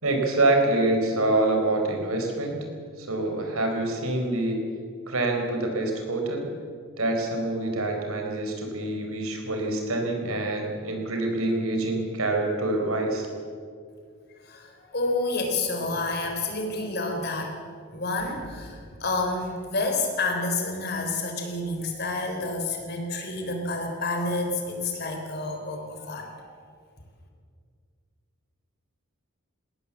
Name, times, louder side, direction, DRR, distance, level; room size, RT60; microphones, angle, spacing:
voice 1, 0.0-2.7 3.0-4.6 5.1-6.5 7.0-13.3, right 2 dB, 80° right, 2 dB, 4.4 m, -26 dB
voice 2, 14.4-17.6 17.9-26.6, left 2 dB, 45° left, 3 dB, 3.8 m, -29 dB
20.5 x 18.0 x 7.5 m, 2.1 s
head